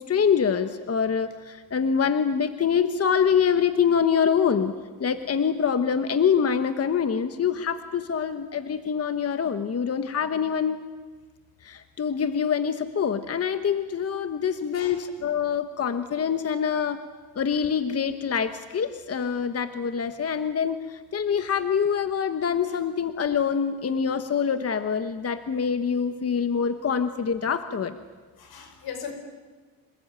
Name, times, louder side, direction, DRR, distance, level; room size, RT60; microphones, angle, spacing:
voice 1, 0.0-4.7 5.0-10.8 11.6-17.0 17.4-27.9, left 7 dB, 40° left, 9 dB, 1.2 m, -25 dB
voice 2, 16.6-16.9 22.7-22.8 28.4-29.1, left 7 dB, 85° left, 6 dB, 5.1 m, -39 dB
27.5 x 20.0 x 9.0 m, 1.4 s
cardioid pair, 115°, 36 cm